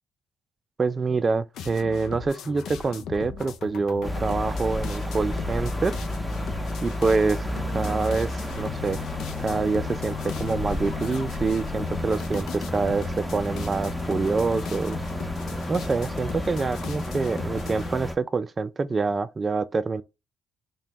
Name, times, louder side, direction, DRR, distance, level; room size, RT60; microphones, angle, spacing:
voice 1, 0.8-6.0 6.8-9.0 9.4-15.0 15.7-20.0, right 4 dB, 35° right, 0.3 m, -26 dB
sound 1, 1.5-17.9, left 5 dB, 75° left, 0.4 m, -38 dB
sound 2, 4.0-18.1, left 1 dB, 5° left, 0.7 m, -31 dB
2.8 x 2.1 x 3.3 m
supercardioid pair, 60°, 0 cm